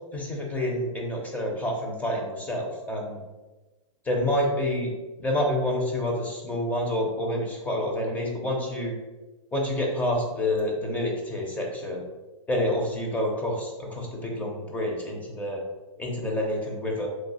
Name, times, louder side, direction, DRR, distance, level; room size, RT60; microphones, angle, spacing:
voice 1, 0.1-3.2 4.1-4.9 5.2-8.9 9.5-12.0 12.5-15.6 16.0-17.1, left 1 dB, 10° left, 0 dB, 0.5 m, -28 dB
3.1 x 2.2 x 3.9 m, 1.2 s
hypercardioid pair, 135°, 18 cm